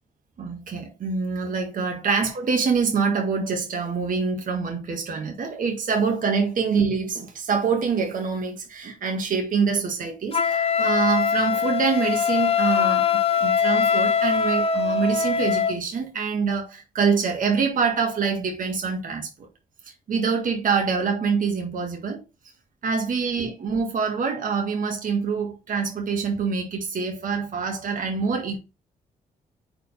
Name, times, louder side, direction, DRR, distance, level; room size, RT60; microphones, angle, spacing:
voice 1, 0.4-19.5 20.1-22.2 22.8-28.6, right 5 dB, 60° right, 1.6 m, -25 dB
Wind instrument woodwind instrument, 10.3-15.8, left 6 dB, 40° left, 1.0 m, -22 dB
4.5 x 4.0 x 5.6 m
cardioid pair, 65°, 16 cm